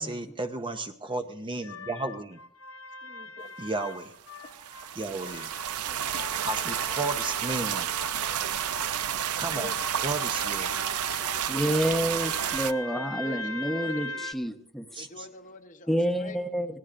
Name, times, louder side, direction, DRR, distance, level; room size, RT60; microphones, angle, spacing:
voice 1, 0.0-2.4 3.6-4.1 5.0-5.5 6.4-7.9 9.4-9.7 10.0-10.7 14.9-15.2, right 2 dB, 20° right, 7 dB, 0.7 m, -33 dB
sound 1, 1.6-4.9 5.2-11.5 12.1-14.3, left 3 dB, 65° left, 0.9 m, -41 dB
voice 2, 3.0-3.6 5.9-6.0 6.7-6.8 9.5-12.5 12.9-14.3 15.0-16.4, left 3 dB, 35° left, 6 dB, 0.9 m, -47 dB
sound 2, 4.3-12.7, right 10 dB, 80° right, 0.5 m, -31 dB
voice 3, 11.5-15.1 15.9-16.7, equal, ahead, 5 dB, 1.0 m, -28 dB
26.0 x 17.5 x 2.5 m, 0.68 s
head